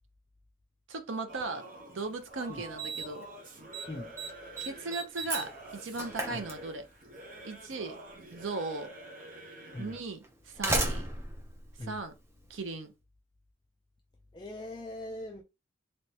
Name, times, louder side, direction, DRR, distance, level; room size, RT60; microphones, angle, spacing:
voice 1, 0.9-1.7 1.9-3.3 4.6-6.9 7.4-8.0 8.3-8.9 9.8-11.1 11.8-12.1 12.5-12.9, right 3 dB, 80° right, 0.7 m, -37 dB
Singing / Musical instrument, 1.3-10.1, right 1 dB, 45° right, 0.9 m, -48 dB
Slam, 2.0-2.1 2.8-3.2 3.5-3.9 4.2-7.1 8.2-8.3 9.2-9.3 10.2-12.6, right 2 dB, 15° right, 0.7 m, -35 dB
voice 2, 14.3-15.4, left 1 dB, 20° left, 0.4 m, -41 dB
3.3 x 2.9 x 2.8 m
head